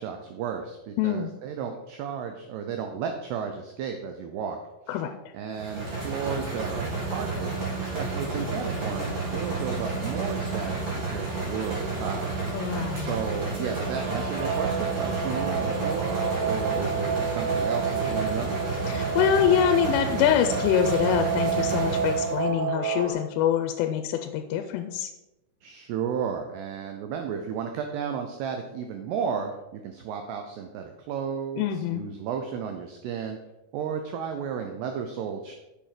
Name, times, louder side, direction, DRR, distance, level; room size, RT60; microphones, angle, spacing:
voice 1, 0.0-4.6 4.9-5.0 5.3-12.4 13.0-18.5 25.6-33.4 33.7-35.5, right 7 dB, 90° right, 5 dB, 2.3 m, -33 dB
voice 2, 1.0-1.3 4.9-5.1 12.5-13.2 18.9-25.1 31.6-32.1, left 9 dB, 90° left, 6 dB, 3.2 m, -25 dB
sound 1, 5.6-22.4, right 3 dB, 40° right, 3.2 m, -31 dB
Guitar, 13.7-23.1, right 6 dB, 60° right, 4.0 m, -30 dB
7.8 x 7.2 x 4.9 m, 0.97 s
omnidirectional pair, 5.6 m